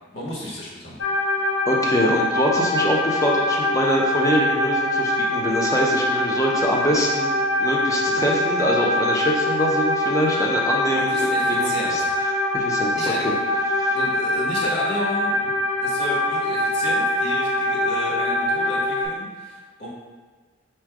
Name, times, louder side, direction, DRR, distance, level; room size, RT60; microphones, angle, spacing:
voice 1, 0.1-1.0 10.9-12.1 12.9-13.2 13.9-15.4 15.8-19.9, left 1 dB, 60° left, -5 dB, 1.3 m, -32 dB
sound 1, 1.0-19.0, left 1 dB, 85° left, 0.6 m, -23 dB
voice 2, 1.7-7.3 7.6-12.0 12.5-13.1 13.7-14.0, equal, 15° left, -3 dB, 0.6 m, -24 dB
4.4 x 2.2 x 4.7 m, 1.5 s
head